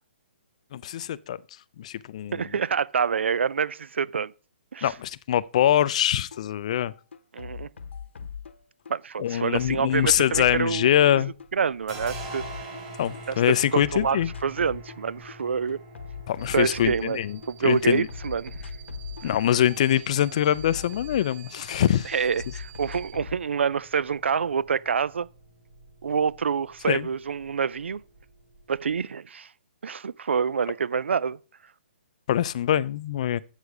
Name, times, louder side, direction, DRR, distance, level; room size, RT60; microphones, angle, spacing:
voice 1, 0.7-1.4 1.8-2.4 4.8-6.9 9.2-11.3 13.0-14.3 16.3-18.1 19.2-22.1 26.9-27.1 32.3-33.4, left 11 dB, 35° left, 0.4 m, -23 dB
voice 2, 2.3-4.3 4.7-4.9 7.3-7.7 8.9-11.2 11.5-12.4 13.3-15.8 16.5-18.7 22.0-25.3 26.0-28.0 28.7-29.5 29.8-31.4, right 6 dB, 85° right, 0.4 m, -27 dB
sound 1, 6.3-6.4 6.7-8.9 9.3-13.2 13.5-15.0 15.3-17.5 17.8-21.8 22.1-23.4, left 7 dB, 80° left, 0.9 m, -41 dB
sound 2, 10.5-11.2 11.5-29.0, right 2 dB, 30° right, 4.3 m, -46 dB
sound 3, 16.4-23.1, right 7 dB, 65° right, 3.3 m, -47 dB
8.2 x 6.4 x 4.9 m
hypercardioid pair, 165°, 6 cm